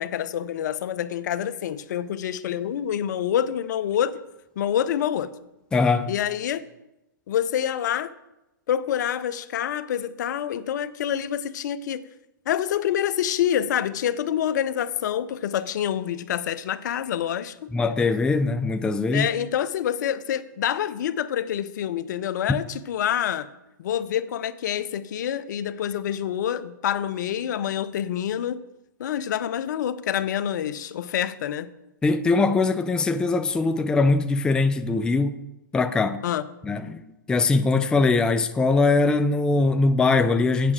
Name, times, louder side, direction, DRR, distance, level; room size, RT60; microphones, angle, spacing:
voice 1, 0.0-4.2 4.6-5.3 6.1-6.6 7.3-8.1 8.7-12.1 12.5-17.7 19.1-23.5 23.8-28.6 29.0-31.7 36.2-36.5, left 10 dB, 60° left, 0.6 m, -27 dB
voice 2, 5.7-6.1 17.7-19.3 22.5-22.6 32.0-35.3 35.7-36.2 36.6-37.0 37.3-40.7, left 3 dB, 5° left, 0.4 m, -21 dB
8.4 x 5.9 x 7.4 m
hypercardioid pair, 125°, 11 cm